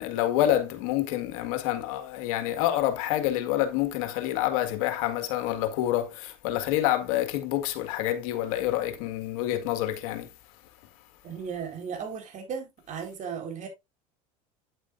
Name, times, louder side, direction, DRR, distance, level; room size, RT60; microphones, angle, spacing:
voice 1, 0.0-10.3, left 13 dB, 70° left, 1.8 m, -27 dB
voice 2, 11.2-13.7, right 6 dB, 45° right, 4.3 m, -36 dB
9.0 x 8.4 x 2.6 m
hypercardioid pair, 85°, 18 cm